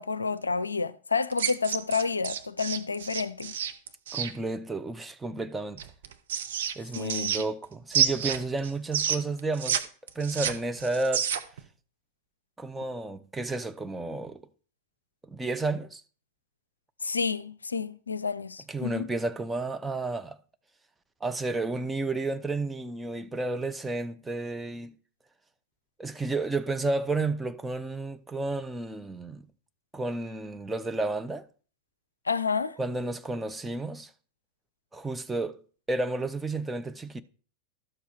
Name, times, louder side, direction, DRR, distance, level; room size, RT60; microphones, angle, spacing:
voice 1, 0.0-3.6 6.9-7.3 17.0-19.1 32.3-32.8, left 5 dB, 75° left, 0.4 m, -30 dB
sound 1, 1.3-4.3 5.8-7.6 7.9-9.8 10.1-11.6, right 8 dB, 60° right, 0.9 m, -29 dB
voice 2, 4.1-5.8 6.8-9.8 10.2-11.3 12.6-14.4 15.3-16.0 18.7-20.4 21.2-24.9 26.0-29.4 29.9-31.5 32.8-34.1 34.9-35.6 35.9-37.2, right 2 dB, 10° right, 0.6 m, -31 dB
12.0 x 7.0 x 4.4 m
figure-of-eight pair, 90°, 0 cm